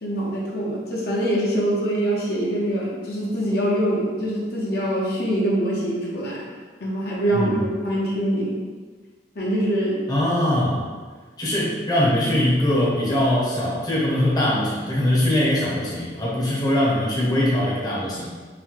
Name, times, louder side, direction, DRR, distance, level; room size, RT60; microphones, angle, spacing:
voice 1, 0.0-6.5 6.8-8.6 9.3-10.0, right 1 dB, 55° left, -5 dB, 0.8 m, -24 dB
voice 2, 10.1-10.8 11.4-18.3, left 1 dB, 20° left, -6 dB, 0.8 m, -22 dB
4.0 x 2.2 x 4.5 m, 1.4 s
head